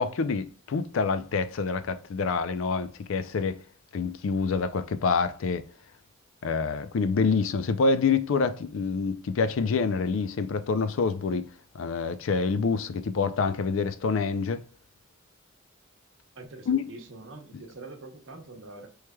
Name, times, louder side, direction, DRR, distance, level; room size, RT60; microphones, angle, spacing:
voice 1, 0.0-3.6 3.9-5.6 6.4-11.4 11.7-14.6 16.7-16.8, left 4 dB, 70° left, 0.4 m, -27 dB
voice 2, 16.3-18.9, right 2 dB, 65° right, 0.8 m, -44 dB
4.8 x 3.1 x 2.2 m
head